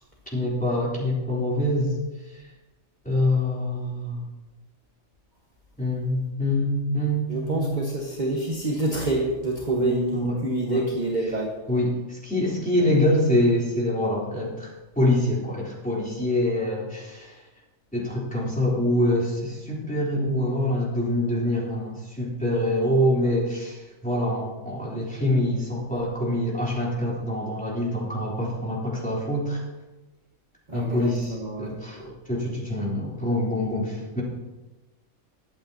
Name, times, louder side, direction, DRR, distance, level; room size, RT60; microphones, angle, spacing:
voice 1, 0.3-2.0 2.3-2.4 3.0-4.2 5.8-7.7 9.8-10.4 10.7-10.8 11.7-17.4 17.9-29.6 30.7-34.2, left 1 dB, 5° left, -6 dB, 3.4 m, -25 dB
voice 2, 7.3-11.6 30.7-31.7, right 2 dB, 35° right, -2 dB, 1.4 m, -27 dB
21.5 x 8.7 x 2.9 m, 1.1 s
omnidirectional pair, 1.5 m